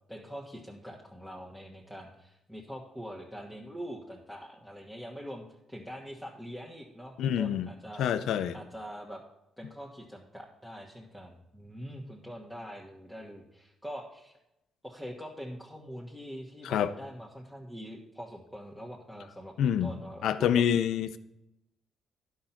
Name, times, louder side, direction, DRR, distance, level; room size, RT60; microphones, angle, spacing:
voice 1, 0.1-8.1 8.5-9.2 9.6-14.3 14.8-20.6, equal, ahead, -3 dB, 1.4 m, -44 dB
voice 2, 7.2-7.7 8.0-8.6 16.6-16.9 19.6-19.9 20.2-21.2, left 9 dB, 80° left, 12 dB, 0.6 m, -27 dB
10.5 x 5.6 x 5.9 m, 0.86 s
cardioid pair, 90°, 0 cm